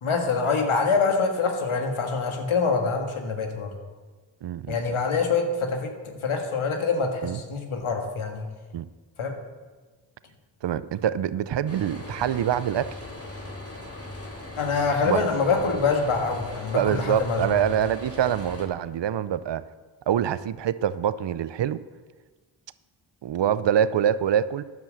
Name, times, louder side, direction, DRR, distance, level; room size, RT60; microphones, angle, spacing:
voice 1, 0.0-3.7 4.7-8.4 9.2-9.3 14.6-17.4, left 4 dB, 85° left, 3 dB, 1.8 m, -25 dB
voice 2, 4.4-5.0 7.2-7.4 8.7-8.9 10.6-13.0 15.0-15.2 16.7-19.6 20.1-21.8 23.2-24.6, right 9 dB, 60° right, 16 dB, 0.6 m, -25 dB
sound 1, 11.7-18.7, left 2 dB, 30° left, 2.7 m, -39 dB
10.5 x 7.1 x 7.4 m, 1.4 s
cardioid pair, 55°, 48 cm